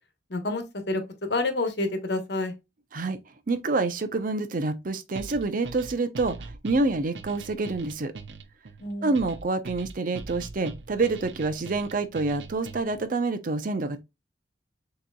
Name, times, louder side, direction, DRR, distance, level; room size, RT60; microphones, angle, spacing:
voice 1, 0.3-1.0 1.3-2.5 8.8-9.1, left 2 dB, 65° left, 1.1 m, -28 dB
voice 2, 3.5-8.1 9.0-14.0, right 3 dB, 50° right, 0.6 m, -27 dB
sound 1, 5.2-13.1, right 3 dB, 90° right, 0.6 m, -42 dB
6.4 x 3.0 x 2.2 m
head